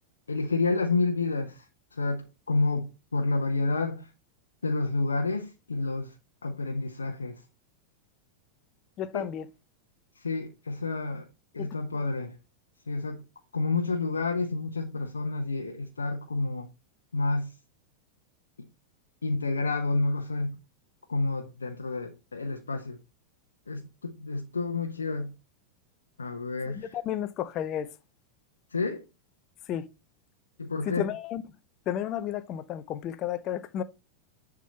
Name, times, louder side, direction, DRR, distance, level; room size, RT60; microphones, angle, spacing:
voice 1, 0.3-1.6 1.9-4.1 4.6-6.1 6.4-7.4 9.1-9.3 10.2-11.3 11.5-12.3 12.9-13.2 13.5-16.7 17.1-17.5 19.2-20.6 21.1-23.0 23.7-25.3 26.2-27.0 28.7-29.0 30.6-31.1, left 3 dB, 75° left, 0.9 m, -29 dB
voice 2, 9.0-9.5 11.6-11.7 26.7-27.9 29.7-29.8 30.8-31.4 31.9-33.8, left 10 dB, 35° left, 0.7 m, -32 dB
10.0 x 3.7 x 4.4 m
figure-of-eight pair, 90°, 0 cm